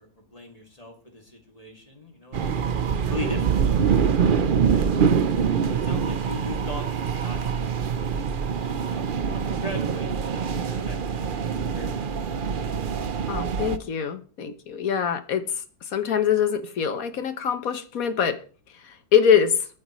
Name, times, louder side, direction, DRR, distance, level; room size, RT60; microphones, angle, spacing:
voice 1, 0.0-2.5 3.1-4.1 4.7-5.2 5.7-12.1, left 2 dB, 20° left, 2.6 m, -40 dB
sound 1, 2.3-13.8, right 7 dB, 45° right, 0.7 m, -24 dB
voice 2, 13.3-15.5 15.9-18.4 18.8-19.7, left 8 dB, 65° left, 1.5 m, -23 dB
22.0 x 9.5 x 3.1 m
omnidirectional pair, 1.7 m